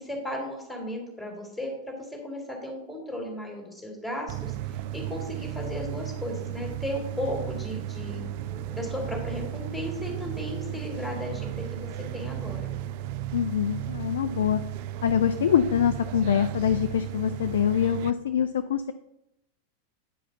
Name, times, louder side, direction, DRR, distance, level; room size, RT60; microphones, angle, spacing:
voice 1, 0.0-1.9 2.2-8.2 8.7-12.7, left 1 dB, ahead, 0 dB, 2.3 m, -35 dB
sound 1, 4.3-18.1, right 12 dB, 45° right, 0.3 m, -35 dB
sound 2, 8.1-13.1, right 1 dB, 30° right, 1.4 m, -49 dB
voice 2, 13.3-14.6 15.0-18.9, left 9 dB, 60° left, 10 dB, 0.3 m, -24 dB
8.9 x 4.9 x 3.9 m, 0.83 s
figure-of-eight pair, 90°, 0 cm